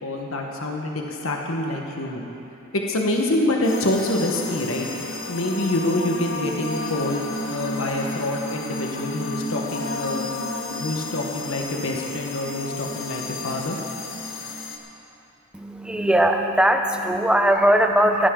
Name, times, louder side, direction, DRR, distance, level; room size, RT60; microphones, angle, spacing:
voice 1, 0.0-2.3 2.7-4.9 5.3-10.3 10.7-13.8, left 1 dB, 85° left, 1 dB, 1.4 m, -26 dB
sound 1, 3.6-14.8, left 2 dB, 65° left, 1.3 m, -32 dB
voice 2, 15.5-18.3, right 1 dB, 5° right, 4 dB, 0.7 m, -19 dB
16.5 x 16.0 x 3.8 m, 2.9 s
head